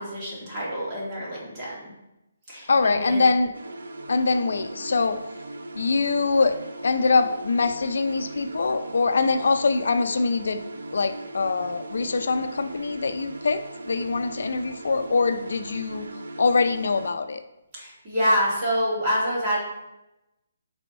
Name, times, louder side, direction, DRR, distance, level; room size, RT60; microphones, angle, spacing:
voice 1, 0.0-1.8 2.5-3.2 17.7-19.6, equal, 20° right, -7 dB, 2.2 m, -26 dB
voice 2, 2.7-3.5 4.1-5.2 5.8-6.6 6.8-10.6 10.9-16.1 16.4-17.4, left 4 dB, 70° left, 8 dB, 0.5 m, -23 dB
sound 1, 3.5-17.1, right 2 dB, 90° right, 0.7 m, -39 dB
6.2 x 3.4 x 5.4 m, 0.93 s
hypercardioid pair, 170°, 0 cm